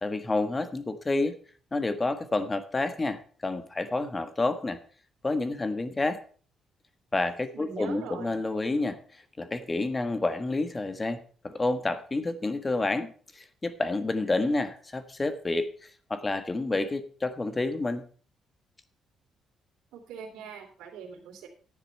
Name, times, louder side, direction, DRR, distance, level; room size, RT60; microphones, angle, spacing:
voice 1, 0.0-1.4 1.7-4.8 5.2-6.2 7.1-9.0 9.4-11.2 11.4-15.7 16.1-18.0, left 2 dB, 25° left, 9 dB, 1.5 m, -29 dB
voice 2, 7.5-8.4 19.9-21.5, right 6 dB, 90° right, 1 dB, 3.0 m, -42 dB
11.0 x 9.8 x 4.5 m, 0.42 s
cardioid pair, 90°, 0 cm